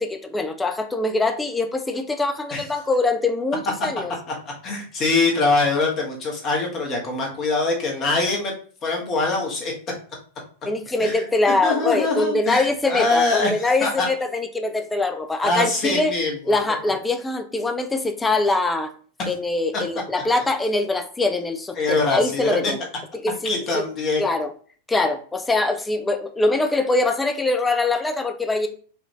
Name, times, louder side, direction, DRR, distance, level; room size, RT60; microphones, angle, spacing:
voice 1, 0.0-4.1 10.6-16.1 16.5-18.9 19.3-22.8 23.2-23.8 24.2-24.5 24.9-28.7, left 2 dB, 10° left, 0.5 m, -23 dB
voice 2, 4.6-8.5 8.8-9.7 11.0-11.2 11.6-14.1 15.4-16.5 19.2-19.3 21.8-22.7 23.4-24.2, left 3 dB, 30° left, 1.3 m, -23 dB
4.8 x 2.7 x 3.1 m
figure-of-eight pair, 90°, 0 cm